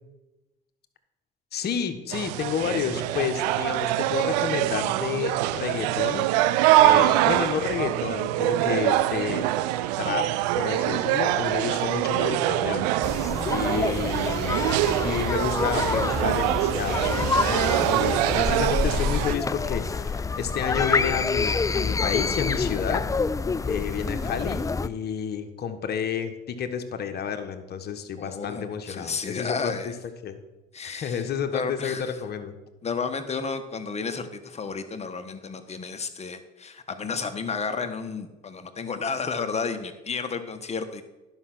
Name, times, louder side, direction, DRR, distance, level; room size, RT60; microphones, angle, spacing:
voice 1, 1.5-6.3 6.8-9.5 10.0-10.3 10.6-12.9 13.5-14.6 15.0-23.0 23.7-29.7 30.2-30.4 30.8-32.6, left 7 dB, 50° left, 6 dB, 1.3 m, -30 dB
sound 1, 2.1-19.4, right 14 dB, 90° right, 0.4 m, -24 dB
sound 2, 13.0-24.9, left 4 dB, 15° left, 0.4 m, -27 dB
voice 2, 13.5-14.1 23.6-23.7 28.2-29.9 30.7-32.2 32.8-41.0, left 5 dB, 30° left, 7 dB, 1.3 m, -32 dB
11.0 x 5.6 x 6.1 m, 1.1 s
supercardioid pair, 75°, 20 cm